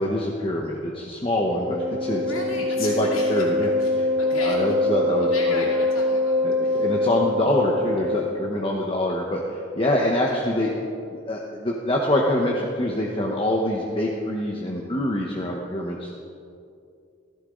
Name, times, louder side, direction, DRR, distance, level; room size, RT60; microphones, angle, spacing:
voice 1, 0.0-2.2 2.6-5.6 6.4-10.7 11.1-16.2, left 1 dB, 25° left, -2 dB, 1.1 m, -25 dB
Wind instrument woodwind instrument, 1.4-8.5, left 2 dB, 5° right, 1.9 m, -24 dB
voice 2, 2.2-3.4 3.8-4.6 5.2-6.9 10.2-10.7, left 2 dB, 85° left, -3 dB, 2.7 m, -36 dB
16.5 x 15.0 x 3.9 m, 2.4 s
head